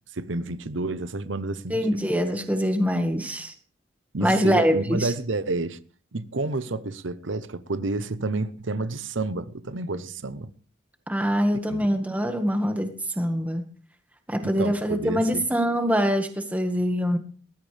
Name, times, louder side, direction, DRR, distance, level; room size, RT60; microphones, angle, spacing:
voice 1, 0.1-2.0 4.1-5.8 6.1-10.5 11.7-11.9 14.4-15.4, right 2 dB, 80° right, 0.9 m, -30 dB
voice 2, 1.7-3.5 4.2-5.1 11.1-13.6 14.3-17.2, equal, 10° right, 1.8 m, -24 dB
19.5 x 14.5 x 3.5 m
head